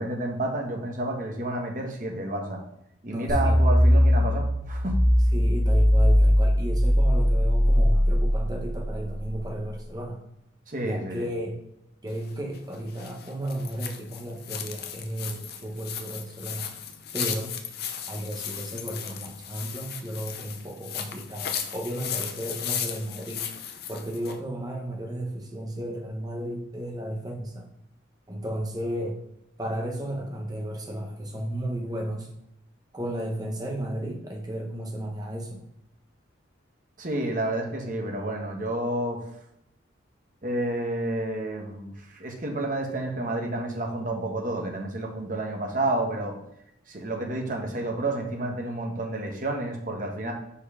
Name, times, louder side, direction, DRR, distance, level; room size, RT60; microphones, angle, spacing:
voice 1, 0.0-2.6 3.0-5.0 10.7-11.3 37.0-39.2 40.4-46.3 46.9-50.3, right 1 dB, 40° right, 2 dB, 1.1 m, -30 dB
voice 2, 3.1-3.6 5.3-10.2 10.8-11.6 12.0-16.7 17.1-17.5 18.1-23.5 23.9-27.7 28.3-29.2 29.6-32.3 32.9-35.6, right 1 dB, 20° right, 1 dB, 1.0 m, -34 dB
sound 1, 3.3-9.5, equal, 35° left, 2.3 m, -20 dB
sound 2, 12.1-24.4, left 9 dB, 50° left, 0.6 m, -36 dB
5.6 x 4.4 x 4.8 m, 0.80 s
head